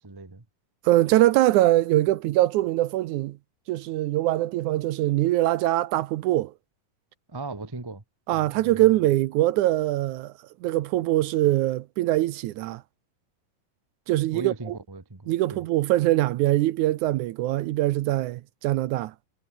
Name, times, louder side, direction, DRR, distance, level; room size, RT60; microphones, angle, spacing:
voice 1, 0.0-0.4 7.3-8.0 8.3-8.9 14.3-15.6, right 3 dB, 20° right, 0.6 m, -38 dB
voice 2, 0.8-3.4 3.7-6.5 8.3-10.3 10.6-12.8 14.1-14.8 15.3-19.1, right 15 dB, 75° right, 2.0 m, -23 dB
omnidirectional pair, 3.8 m